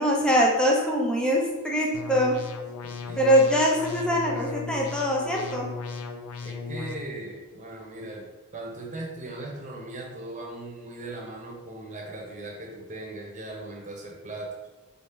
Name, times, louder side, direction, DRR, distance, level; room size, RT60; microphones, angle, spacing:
voice 1, 0.0-2.4 3.2-5.6, equal, 5° left, -3 dB, 0.6 m, -23 dB
sound 1, 1.9-6.9, left 4 dB, 85° left, 0.5 m, -36 dB
voice 2, 2.8-3.3 6.4-14.5, right 2 dB, 35° right, -2 dB, 0.9 m, -38 dB
4.1 x 2.9 x 3.6 m, 1.1 s
head